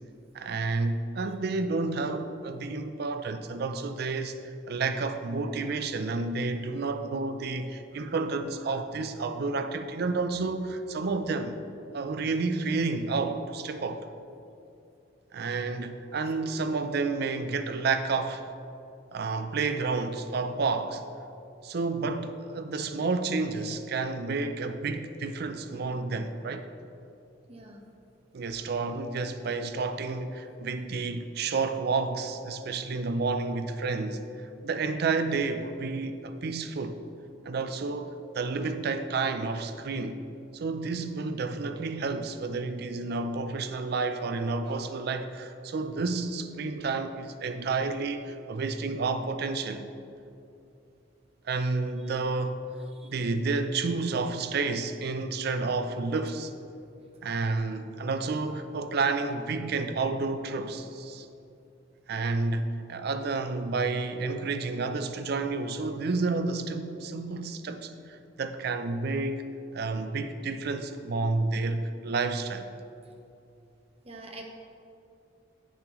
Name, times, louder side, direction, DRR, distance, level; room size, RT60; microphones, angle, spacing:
voice 1, 0.3-11.6 11.9-14.1 15.3-18.5 19.1-21.0 21.6-26.7 28.3-37.0 37.4-40.2 40.5-49.9 51.4-52.6 53.0-56.5 57.2-61.3 62.1-69.5 69.7-72.7, right 3 dB, 60° right, 0.4 m, -30 dB
voice 2, 27.5-27.9 28.4-28.5 52.9-53.1 74.0-74.4, right 2 dB, 35° right, 0.8 m, -46 dB
9.3 x 6.9 x 3.0 m
head